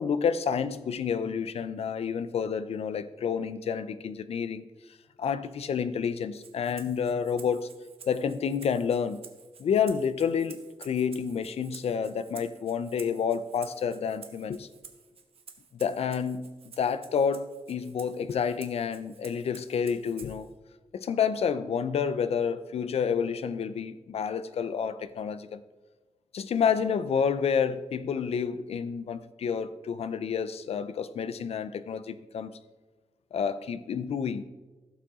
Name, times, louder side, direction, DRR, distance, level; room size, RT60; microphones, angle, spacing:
voice 1, 0.0-4.7 5.2-7.7 8.1-9.2 9.6-14.7 15.8-16.4 16.8-20.5 20.9-25.6 26.3-32.6 33.3-34.4, left 7 dB, 90° left, 0.5 m, -29 dB
Rattle (instrument), 6.3-20.5, right 6 dB, 70° right, 1.0 m, -51 dB
15.5 x 5.7 x 3.7 m
wide cardioid pair, 105°, 10 cm